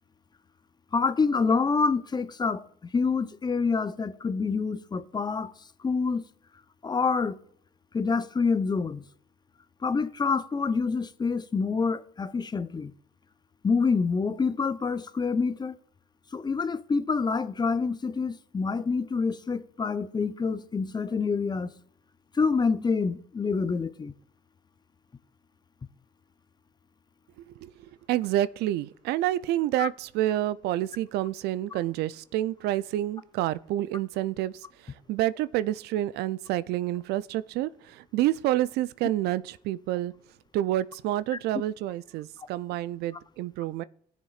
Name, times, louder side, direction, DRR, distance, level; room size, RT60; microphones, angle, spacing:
voice 1, 0.9-5.5 5.8-6.2 6.8-7.4 7.9-9.0 9.8-12.9 13.6-15.8 16.3-21.7 22.3-24.1 29.8-29.9, left 4 dB, 25° left, 0.6 m, -27 dB
voice 2, 27.5-40.1 40.5-43.8, right 14 dB, 65° right, 0.4 m, -28 dB
16.5 x 7.3 x 2.4 m
hypercardioid pair, 65°, 18 cm